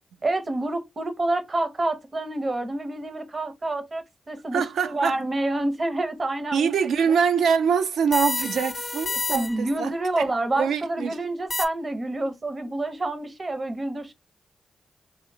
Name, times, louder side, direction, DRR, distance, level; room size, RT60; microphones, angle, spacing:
voice 1, 0.2-6.7 7.1-7.2 9.3-14.1, right 2 dB, 45° right, 0.7 m, -28 dB
voice 2, 4.5-5.2 6.5-11.2, right 6 dB, 80° right, 0.3 m, -24 dB
sound 1, 8.1-9.8 11.5-11.7, left 3 dB, 55° left, 0.5 m, -29 dB
2.8 x 2.1 x 2.6 m
supercardioid pair, 40°, 0 cm